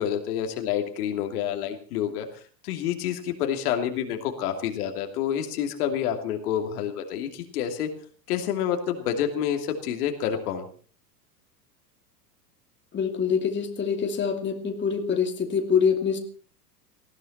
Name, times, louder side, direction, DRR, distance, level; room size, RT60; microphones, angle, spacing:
voice 1, 0.0-2.3 2.6-7.9 8.3-10.6, left 9 dB, 60° left, 5 dB, 2.9 m, -28 dB
voice 2, 12.9-16.2, left 6 dB, 20° left, 4 dB, 2.6 m, -25 dB
19.5 x 14.5 x 4.3 m, 0.42 s
hypercardioid pair, 95°, 50 cm